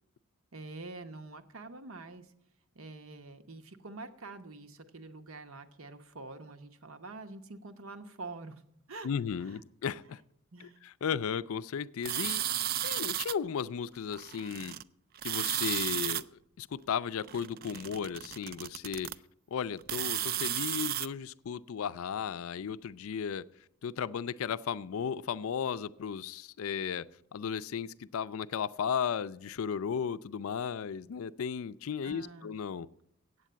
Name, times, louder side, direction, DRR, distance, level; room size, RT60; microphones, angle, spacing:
voice 1, 0.5-2.3 2.7-8.6 8.9-9.1 9.4-9.6 10.5-10.8 32.0-32.5, right 3 dB, 70° right, 8 dB, 1.0 m, -46 dB
voice 2, 9.0-10.2 10.6-14.8 15.2-19.1 19.5-23.5 23.8-32.9, left 7 dB, 75° left, 16 dB, 0.4 m, -35 dB
sound 1, 12.0-13.3 14.1-14.8 15.2-16.2 17.2-19.2 19.8-21.1, right 12 dB, 45° right, 0.3 m, -34 dB
8.4 x 8.1 x 9.0 m, 0.74 s
head